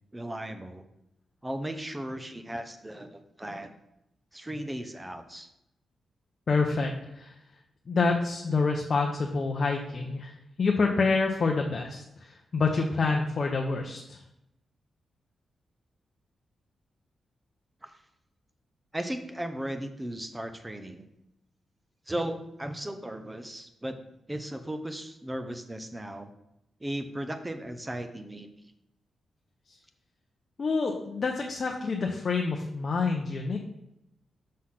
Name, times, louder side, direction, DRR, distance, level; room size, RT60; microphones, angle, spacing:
voice 1, 0.1-0.9 1.4-3.7 4.3-5.5 17.8-17.9 18.9-21.1 22.1-24.0 24.3-26.3 26.8-28.5, right 1 dB, 10° right, 8 dB, 0.6 m, -36 dB
voice 2, 6.5-7.3 7.9-10.3 10.6-14.2 30.6-33.6, left 4 dB, 40° left, 1 dB, 0.7 m, -27 dB
6.3 x 3.9 x 5.7 m, 0.84 s
wide cardioid pair, 130°, 0 cm